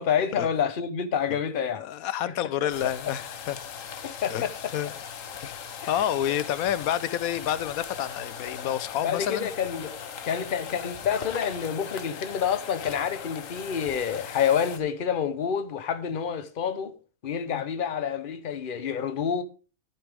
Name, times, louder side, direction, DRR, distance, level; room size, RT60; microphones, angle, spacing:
voice 1, 0.0-1.8 2.8-2.9 4.0-4.7 5.8-5.9 9.0-9.9 10.2-16.9 17.2-19.4, left 8 dB, 40° left, 1.0 m, -28 dB
voice 2, 1.7-3.6 4.3-4.4 4.7-4.9 5.4-5.6 5.9-9.5 17.5-17.6, left 11 dB, 85° left, 1.1 m, -29 dB
sound 1, 2.7-14.8, left 7 dB, 65° left, 1.3 m, -39 dB
11.5 x 9.0 x 3.6 m
omnidirectional pair, 1.5 m